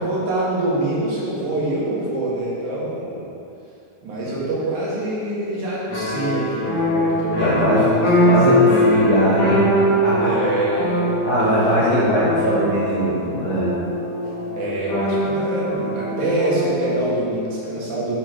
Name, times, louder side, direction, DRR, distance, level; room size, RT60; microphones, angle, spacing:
voice 1, 0.0-3.3 4.0-9.9 10.2-11.1 11.4-11.5 11.9-12.0 14.6-18.2, right 1 dB, 80° right, -7 dB, 3.3 m, -25 dB
sound 1, 5.9-17.1, left 1 dB, 75° left, 3.1 m, -22 dB
voice 2, 7.4-7.9 8.2-9.6 10.0-10.3 11.2-13.7, equal, 60° left, -8 dB, 1.0 m, -20 dB
8.9 x 4.5 x 5.1 m, 2.6 s
omnidirectional pair, 3.4 m